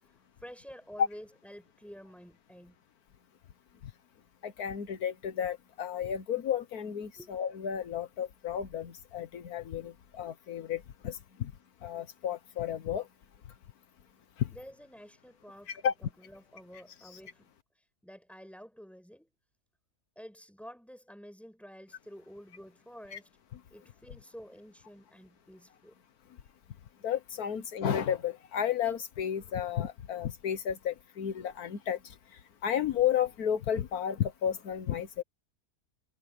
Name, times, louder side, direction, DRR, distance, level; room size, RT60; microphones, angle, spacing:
voice 1, 0.0-2.8 7.2-7.3 14.5-17.5 18.0-19.3 20.2-23.3 23.7-26.0, equal, ahead, 7.3 m, -50 dB
voice 2, 4.4-11.5 11.8-13.1 14.4-14.5 15.7-15.9 17.1-17.2 23.1-23.2 23.5-23.6 27.0-32.1 32.6-35.2, left 9 dB, 80° left, 1.6 m, -32 dB
omnidirectional pair, 1.6 m